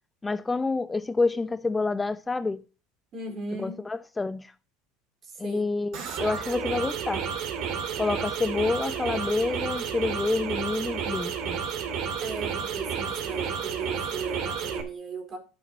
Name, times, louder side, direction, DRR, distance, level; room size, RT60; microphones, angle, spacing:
voice 1, 0.2-2.6 3.6-4.5 5.4-7.3 8.0-11.6, left 3 dB, 15° left, 0.4 m, -28 dB
voice 2, 3.1-3.8 5.2-5.6 12.2-15.4, right 4 dB, 40° right, 4.2 m, -36 dB
sound 1, 5.9-14.8, right 7 dB, 55° right, 2.3 m, -31 dB
12.0 x 5.8 x 4.4 m
hypercardioid pair, 80°, 0 cm